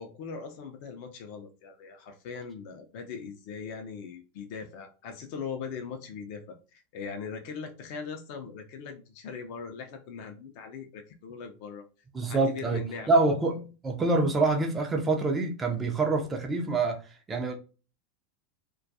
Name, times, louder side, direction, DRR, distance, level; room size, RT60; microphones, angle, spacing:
voice 1, 0.0-11.8 12.3-13.2, left 5 dB, 50° left, 0.4 m, -40 dB
voice 2, 12.1-12.8 13.1-17.0 17.3-17.6, right 3 dB, 20° right, 0.5 m, -26 dB
2.2 x 2.2 x 2.6 m
figure-of-eight pair, 85°, 0 cm